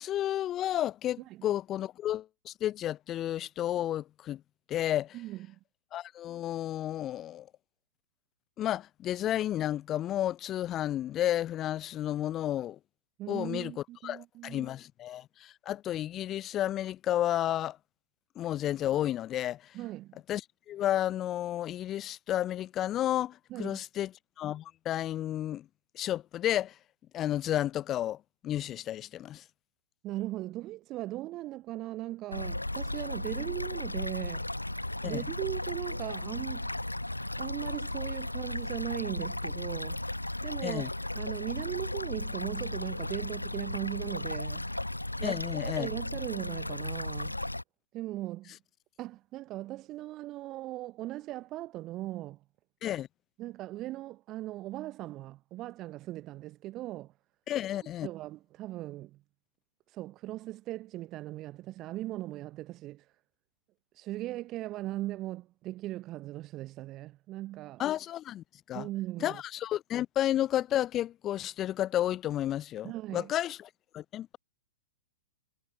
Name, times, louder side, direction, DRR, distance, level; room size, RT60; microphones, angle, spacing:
voice 1, 0.0-4.4 4.7-5.2 5.9-7.5 8.6-12.8 13.3-13.7 14.0-17.8 18.4-19.7 20.3-20.4 20.7-24.1 24.4-25.6 25.9-26.7 27.1-28.2 28.4-29.4 35.0-35.2 40.6-40.9 45.2-45.9 52.8-53.1 57.5-58.1 67.8-68.9 69.2-74.4, left 12 dB, 25° left, 0.5 m, -32 dB
voice 2, 5.1-5.6 13.2-14.7 19.7-20.2 23.5-23.8 30.0-34.5 35.0-36.7 37.4-40.0 40.4-40.9 41.1-44.7 45.2-45.4 45.8-47.3 47.9-48.5 49.0-52.4 53.4-57.1 58.0-59.2 59.9-63.1 63.9-67.8 68.7-69.4 72.8-73.3, right 16 dB, 30° right, 0.7 m, -38 dB
sound 1, 32.3-47.6, left 1 dB, 85° left, 1.1 m, -35 dB
figure-of-eight pair, 110°, 0 cm